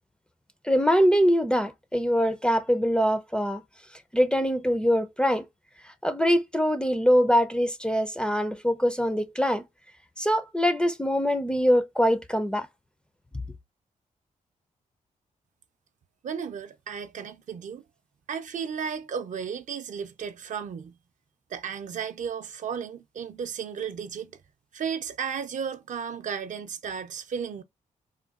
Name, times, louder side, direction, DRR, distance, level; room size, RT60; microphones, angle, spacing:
voice 1, 0.6-3.6 4.1-5.5 6.0-9.6 10.2-12.7, equal, 5° left, 0.4 m, -23 dB
voice 2, 16.2-17.8 18.3-20.9 21.5-24.3 24.7-27.6, right 7 dB, 65° right, 0.4 m, -34 dB
3.6 x 2.2 x 2.3 m
wide cardioid pair, 110°, 14 cm